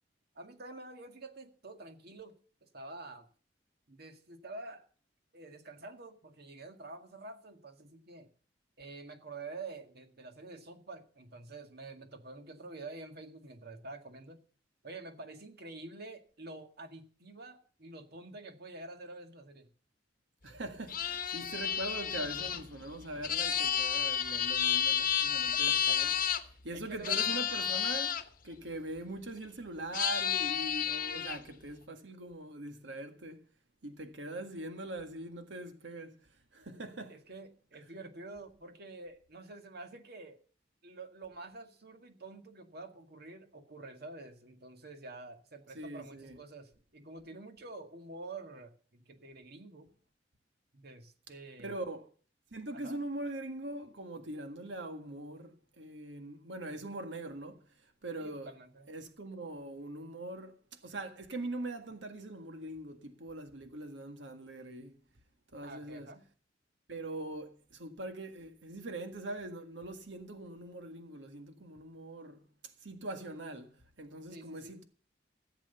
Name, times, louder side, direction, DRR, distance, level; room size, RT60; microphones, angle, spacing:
voice 1, 0.4-2.3 2.6-3.3 3.9-4.9 5.3-8.3 8.8-14.4 14.8-19.7 25.5-26.0 26.7-27.3 37.1-40.4 40.8-49.9 50.7-51.8 52.7-53.0 58.2-58.9 65.6-66.2 74.3-74.8, right 2 dB, 60° right, 1.9 m, -48 dB
voice 2, 20.4-26.1 26.6-33.4 33.8-36.2 36.5-37.2 45.7-46.4 51.6-52.1 52.5-57.7 58.0-58.5 58.9-65.0 65.5-66.1 66.9-72.4 72.8-74.8, right 2 dB, 80° right, 1.7 m, -42 dB
sound 1, 20.9-26.4 27.0-28.2 29.9-31.4, left 8 dB, 50° left, 1.0 m, -31 dB
15.0 x 7.7 x 6.9 m
head